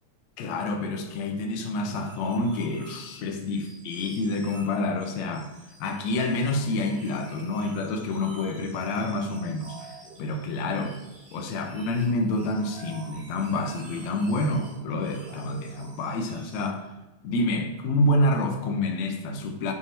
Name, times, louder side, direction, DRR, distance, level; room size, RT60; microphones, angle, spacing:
voice 1, 0.4-5.5 5.8-11.0 11.3-16.9 17.2-19.7, left 2 dB, 75° left, 4 dB, 1.9 m, -28 dB
sound 1, 1.8-16.7, right 3 dB, 60° right, 2.5 m, -48 dB
8.4 x 3.5 x 4.3 m, 1.0 s
omnidirectional pair, 3.4 m